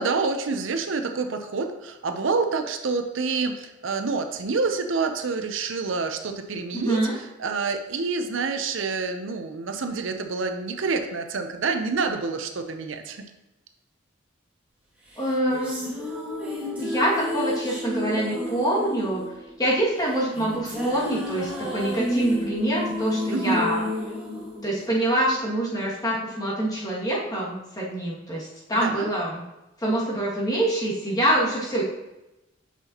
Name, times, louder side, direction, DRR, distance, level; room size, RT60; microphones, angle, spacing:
voice 1, 0.0-13.3 23.3-23.6 28.7-29.1, right 4 dB, 80° right, 6 dB, 0.7 m, -27 dB
voice 2, 6.7-7.1 15.2-16.0 16.8-19.2 19.6-23.8 24.6-29.4 29.8-31.8, right 1 dB, 20° left, -6 dB, 2.1 m, -25 dB
sound 1, 15.1-25.5, left 1 dB, 5° right, 1.8 m, -31 dB
8.3 x 5.8 x 2.9 m, 0.97 s
head